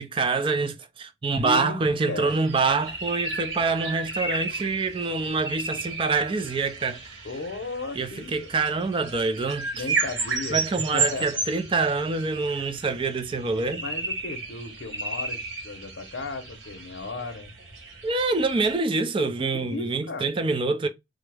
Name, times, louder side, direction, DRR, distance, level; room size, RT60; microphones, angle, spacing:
voice 1, 0.0-7.2 8.0-9.8 10.5-13.8 18.0-20.9, right 3 dB, 30° right, 0.4 m, -26 dB
voice 2, 1.4-2.3 7.2-8.5 9.7-10.6 10.9-11.3 13.8-17.5 19.5-20.3, left 3 dB, 80° left, 0.7 m, -35 dB
sound 1, 2.3-18.7, right 3 dB, 90° right, 1.1 m, -33 dB
3.3 x 2.0 x 3.2 m
head